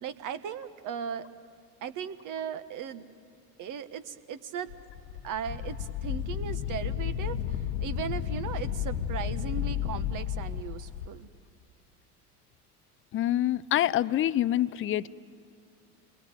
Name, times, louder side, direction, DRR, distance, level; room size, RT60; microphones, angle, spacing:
voice 1, 0.0-1.3 1.8-3.1 3.6-4.7 5.2-11.3, right 8 dB, 40° right, 12 dB, 1.4 m, -37 dB
Wind, 4.7-11.1, left 10 dB, 65° left, 1.1 m, -33 dB
voice 2, 13.1-15.1, left 12 dB, 25° left, 17 dB, 0.6 m, -26 dB
29.0 x 21.5 x 9.2 m, 2.4 s
hypercardioid pair, 75°, 47 cm